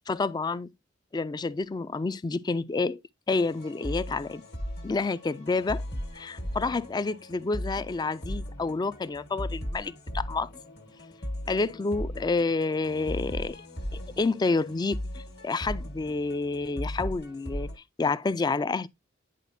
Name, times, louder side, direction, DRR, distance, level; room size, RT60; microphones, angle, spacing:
voice 1, 0.1-0.7 1.1-3.0 3.3-4.4 4.8-5.8 6.1-10.5 11.5-13.6 13.9-18.9, left 3 dB, 20° left, 0.3 m, -29 dB
sound 1, 3.3-17.8, equal, 55° left, 1.5 m, -37 dB
10.0 x 4.2 x 2.6 m
head